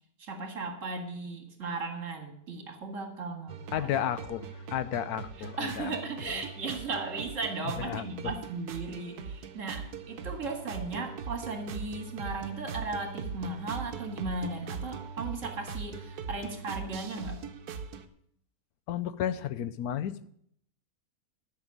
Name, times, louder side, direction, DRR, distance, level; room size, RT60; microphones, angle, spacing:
voice 1, 0.2-3.9 5.6-17.4, right 3 dB, 55° right, 4 dB, 2.2 m, -36 dB
sound 1, 3.5-18.1, right 6 dB, 80° right, 1.4 m, -41 dB
voice 2, 3.7-5.9 6.2-6.4 7.8-8.3 18.9-20.3, left 10 dB, 85° left, 14 dB, 1.2 m, -33 dB
11.5 x 6.2 x 7.5 m, 0.68 s
omnidirectional pair, 1.6 m